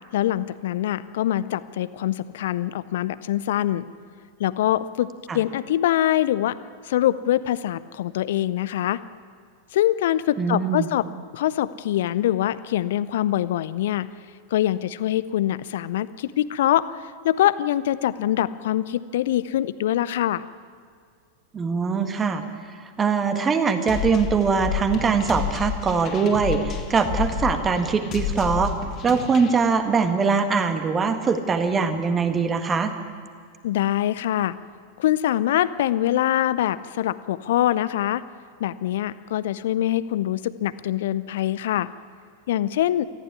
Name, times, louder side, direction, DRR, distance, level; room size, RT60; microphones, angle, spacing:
voice 1, 0.1-3.9 4.4-6.6 6.8-9.0 9.7-11.1 11.3-14.1 14.5-20.4 33.6-34.6 35.0-38.2 38.6-41.9 42.5-43.1, left 12 dB, 55° left, 16 dB, 0.6 m, -24 dB
voice 2, 10.4-10.9 21.5-22.4 23.0-28.7 29.0-32.9, right 5 dB, 20° right, 7 dB, 1.8 m, -22 dB
sound 1, 23.9-29.5, left 7 dB, 35° left, 2.3 m, -30 dB
18.5 x 15.0 x 9.8 m, 2.1 s
figure-of-eight pair, 90°, 0 cm